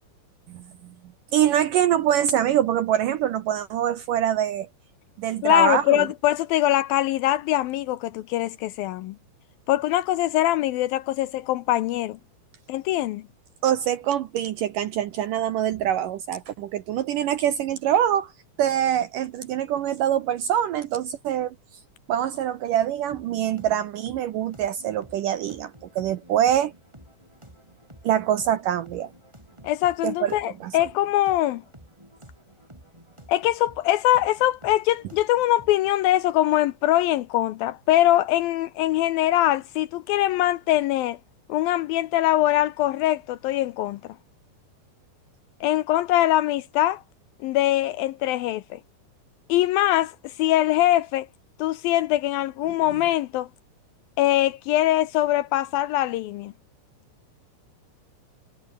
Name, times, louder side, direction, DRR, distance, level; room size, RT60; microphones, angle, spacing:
voice 1, 1.3-4.7 5.2-6.1 13.6-18.3 18.6-21.5 22.1-26.7 28.0-29.1 30.0-30.3 30.6-30.7, right 10 dB, 75° right, 2.0 m, -24 dB
voice 2, 5.4-9.2 9.7-12.2 12.7-13.2 29.6-31.6 33.3-41.2 41.5-44.0 45.6-47.0 47.4-48.8 49.5-51.3 51.6-53.5 54.2-56.5, left 14 dB, 80° left, 2.2 m, -22 dB
sound 1, 23.1-35.9, right 1 dB, 5° right, 6.5 m, -51 dB
omnidirectional pair, 5.0 m